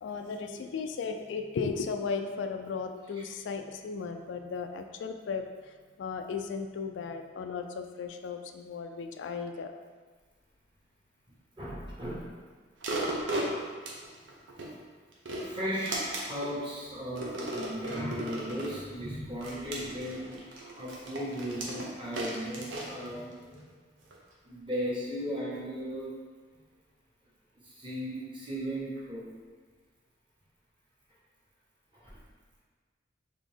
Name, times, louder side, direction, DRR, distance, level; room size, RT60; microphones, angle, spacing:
voice 1, 0.0-5.4 6.0-9.7, left 5 dB, 75° left, 6 dB, 0.3 m, -35 dB
voice 2, 11.6-12.3 13.1-13.3 15.4-23.3 24.4-26.1 27.6-29.2 31.9-32.2, equal, 25° right, -7 dB, 1.3 m, -36 dB
sound 1, 12.8-14.7 15.1-16.5 17.2-18.8 19.4-23.6 24.1-24.2, right 1 dB, 90° right, 0.8 m, -36 dB
4.1 x 3.6 x 3.4 m, 1.4 s
head